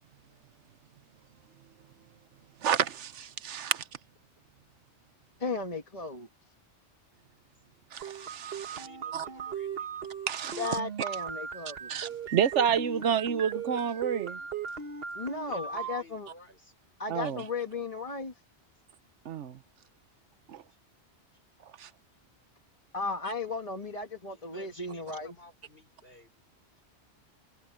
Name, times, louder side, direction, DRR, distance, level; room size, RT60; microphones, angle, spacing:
voice 1, 2.6-3.8 7.9-8.9 9.1-9.3 10.3-10.8 11.9-14.4 17.1-17.4 19.2-19.6 20.5-20.6 21.8-21.9, right 8 dB, 90° right, 1.2 m, -30 dB
voice 2, 5.4-6.3 10.6-11.9 15.2-16.3 17.0-18.3 22.9-25.3, left 3 dB, 30° left, 1.8 m, -35 dB
sound 1, 8.0-16.0, right 7 dB, 60° right, 1.5 m, -38 dB
voice 3, 8.6-10.0 15.5-16.7 24.3-26.3, left 1 dB, 55° left, 6.2 m, -54 dB
omnidirectional pair, 1.2 m